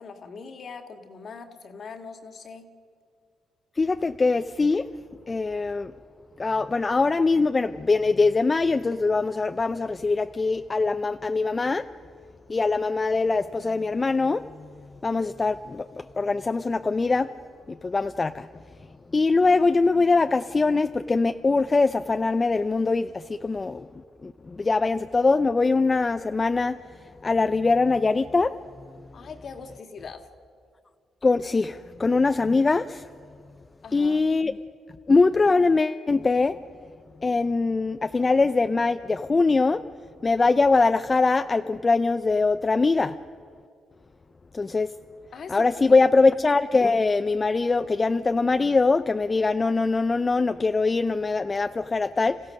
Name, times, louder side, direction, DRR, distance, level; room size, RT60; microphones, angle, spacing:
voice 1, 0.0-2.7 29.1-30.3 33.8-34.2 45.3-46.0, left 5 dB, 50° left, 6 dB, 1.8 m, -41 dB
voice 2, 3.8-4.9 5.3-5.9 6.4-11.9 12.5-14.7 15.0-17.3 17.7-18.5 19.1-23.9 24.2-26.8 27.2-28.5 31.2-33.1 33.9-34.6 35.1-36.6 37.2-39.8 40.2-43.2 44.5-44.9 45.5-52.4, left 3 dB, 25° left, 10 dB, 0.4 m, -22 dB
27.5 x 15.0 x 6.4 m, 2.2 s
cardioid pair, 90°, 0 cm